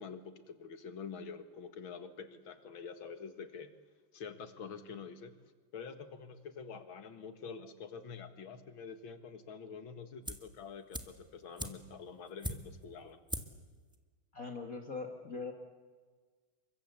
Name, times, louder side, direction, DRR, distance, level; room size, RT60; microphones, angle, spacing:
voice 1, 0.0-3.7 4.1-5.4 5.7-13.2, left 5 dB, 70° left, 10 dB, 2.5 m, -47 dB
sound 1, 10.2-10.6 10.9-12.9 13.3-13.7 13.9-14.0, equal, ahead, 1.4 m, -41 dB
voice 2, 14.3-15.5, left 4 dB, 40° left, 4 dB, 2.1 m, -41 dB
29.0 x 24.0 x 8.2 m, 1.5 s
omnidirectional pair, 2.4 m